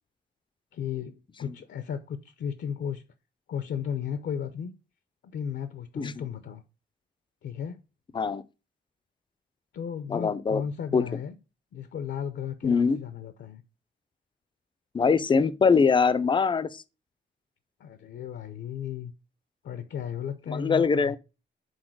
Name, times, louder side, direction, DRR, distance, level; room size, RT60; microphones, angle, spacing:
voice 1, 0.7-3.0 3.5-4.7 5.2-6.6 7.4-7.8 9.7-11.4 11.7-13.6 17.8-19.1 19.6-21.2, left 8 dB, 70° left, 0.7 m, -35 dB
voice 2, 10.1-10.6 10.9-11.0 12.6-13.0 14.9-16.8 20.5-21.2, left 5 dB, 25° left, 0.5 m, -23 dB
6.4 x 4.1 x 4.6 m
wide cardioid pair, 135°, 19 cm